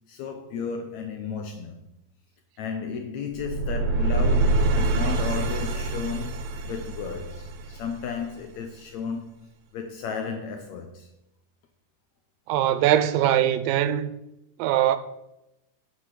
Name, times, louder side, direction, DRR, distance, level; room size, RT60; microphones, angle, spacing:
voice 1, 0.1-1.8 2.6-11.1, left 6 dB, 75° left, 1.7 m, -34 dB
sound 1, 3.3-8.4, right 2 dB, 70° right, 1.9 m, -25 dB
voice 2, 12.5-14.1 14.6-15.0, right 11 dB, 85° right, 2.4 m, -21 dB
8.2 x 4.9 x 7.4 m
omnidirectional pair, 4.0 m